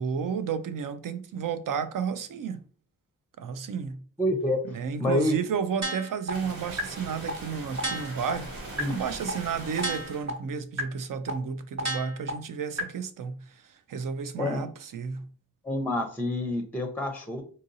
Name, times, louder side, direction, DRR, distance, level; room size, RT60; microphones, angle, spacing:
voice 1, 0.0-2.6 3.4-4.0 4.7-15.3, right 6 dB, 70° right, 0.5 m, -32 dB
voice 2, 4.2-4.7 5.0-5.4 8.8-9.0 14.4-14.6 15.6-17.4, left 1 dB, 5° left, 0.6 m, -27 dB
sound 1, 5.8-6.3 6.8-6.9 7.3-7.4 7.8-8.3 8.8-8.9 9.3-9.4 9.8-10.3 10.8-10.9 11.3-11.4 11.8-12.3 12.8-12.9, right 1 dB, 50° right, 1.1 m, -31 dB
sound 2, 6.3-10.2, right 2 dB, 90° right, 0.9 m, -40 dB
3.9 x 2.6 x 2.6 m
cardioid pair, 45°, 34 cm